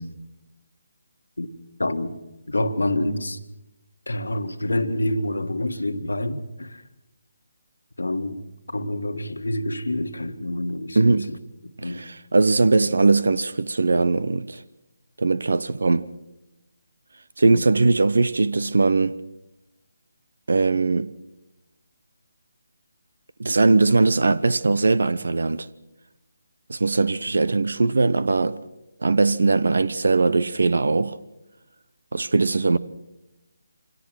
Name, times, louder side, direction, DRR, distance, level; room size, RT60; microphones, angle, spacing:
voice 1, 1.8-2.1 2.5-3.4 4.1-6.8 8.0-11.4 11.6-12.0 17.4-17.7, left 1 dB, 85° left, 1.6 m, -27 dB
voice 2, 11.0-11.3 11.8-14.6 15.2-16.1 17.4-19.2 20.5-21.1 23.4-25.7 26.7-28.6 29.0-31.2 32.1-32.8, right 3 dB, 70° right, 0.7 m, -20 dB
24.5 x 18.0 x 6.3 m
figure-of-eight pair, 150°, 0 cm